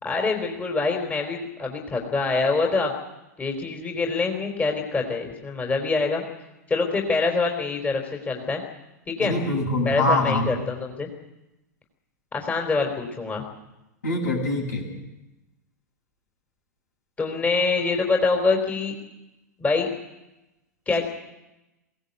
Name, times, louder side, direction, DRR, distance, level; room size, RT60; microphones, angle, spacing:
voice 1, 0.0-2.9 3.4-6.2 6.7-8.6 9.1-9.3 9.8-11.1 12.3-13.4 17.2-18.9 19.6-19.9 20.9-21.1, left 4 dB, 15° left, 2 dB, 3.8 m, -25 dB
voice 2, 9.2-10.5 14.0-14.9, left 2 dB, 70° left, 1 dB, 7.5 m, -24 dB
23.5 x 17.0 x 8.2 m, 0.96 s
figure-of-eight pair, 95°, 9 cm